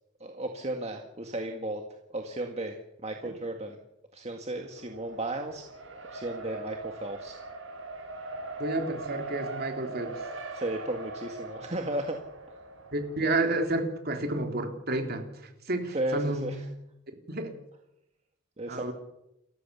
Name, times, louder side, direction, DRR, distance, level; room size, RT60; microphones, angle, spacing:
voice 1, 0.2-1.8 2.1-2.7 3.0-3.8 4.1-5.6 6.1-7.4 10.5-12.2 15.9-16.6 18.6-18.9, right 1 dB, 35° right, 3 dB, 1.9 m, -34 dB
Race car auto racing, 4.7-13.8, right 2 dB, 80° right, 7.9 m, -41 dB
voice 2, 8.6-10.2 12.9-15.3 15.7-16.6 17.3-17.5 18.7-18.9, right 2 dB, 50° right, 5 dB, 3.5 m, -30 dB
29.0 x 14.5 x 7.0 m, 0.85 s
head